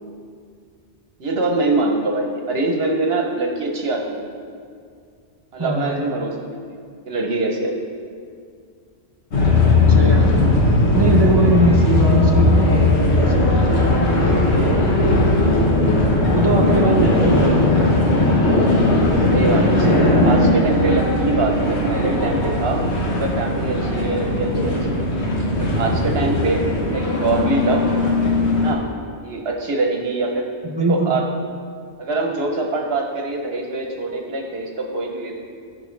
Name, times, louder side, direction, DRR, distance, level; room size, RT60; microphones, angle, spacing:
voice 1, 1.2-4.3 5.5-6.8 7.1-7.8 14.8-15.0 19.3-22.8 23.1-25.2 25.6-26.6 26.9-27.8 28.6-28.9 29.2-30.4 30.9-31.2 32.0-35.3, right 2 dB, 65° right, 1 dB, 1.0 m, -24 dB
voice 2, 5.6-5.9 9.9-10.5 10.9-13.8 16.3-17.8 30.6-31.2, right 2 dB, 25° right, 2 dB, 0.6 m, -21 dB
sound 1, 9.3-28.7, left 2 dB, 75° left, 1.5 m, -17 dB
14.5 x 5.1 x 3.2 m, 2.2 s
omnidirectional pair, 1.1 m